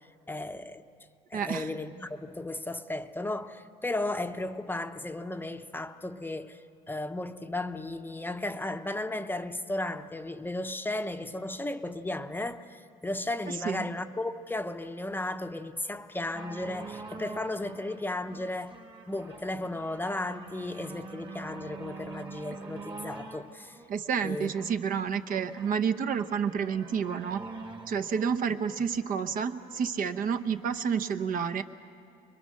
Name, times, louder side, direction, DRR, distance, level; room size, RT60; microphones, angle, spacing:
voice 1, 0.3-0.8 1.3-18.8 19.1-23.8 24.2-24.5, left 2 dB, 10° left, 0.7 m, -35 dB
voice 2, 1.3-1.7 13.6-13.8 23.9-27.4 27.9-31.6, right 7 dB, 55° right, 0.9 m, -29 dB
sound 1, 16.4-29.9 30.7-30.8, right 3 dB, 30° right, 1.6 m, -46 dB
25.0 x 22.5 x 6.5 m
cardioid pair, 110°, 17 cm